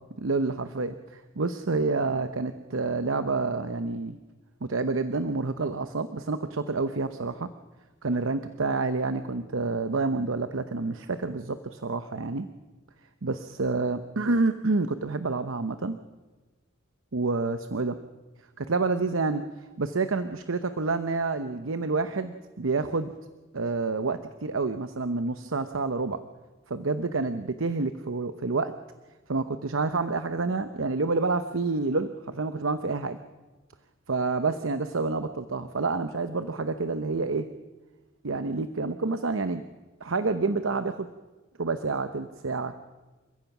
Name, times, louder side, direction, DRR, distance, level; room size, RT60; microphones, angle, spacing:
voice 1, 0.2-4.2 4.6-7.5 8.0-12.5 13.2-16.0 17.1-18.0 18.6-19.4 19.8-23.1 23.5-26.2 26.7-28.7 29.3-33.2 34.1-37.5 38.2-39.6 40.0-41.1 41.6-42.7, right 3 dB, 70° right, 10 dB, 0.8 m, -28 dB
29.0 x 15.0 x 6.0 m, 1.2 s
head